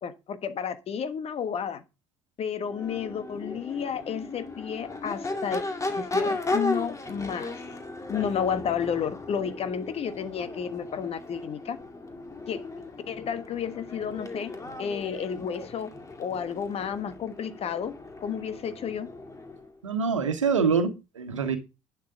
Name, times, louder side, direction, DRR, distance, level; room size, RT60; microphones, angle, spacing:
voice 1, 0.0-1.8 2.4-5.6 5.9-7.5 8.1-11.8 12.5-12.6 13.1-14.5 14.8-15.9 16.2-19.1, left 7 dB, 40° left, 1.3 m, -31 dB
Crowd / Race car auto racing / Accelerating revving vroom, 2.6-19.7, left 2 dB, 20° left, 2.1 m, -36 dB
voice 2, 19.8-21.6, right 5 dB, 80° right, 1.4 m, -25 dB
11.0 x 9.3 x 3.9 m
figure-of-eight pair, 60°, 16 cm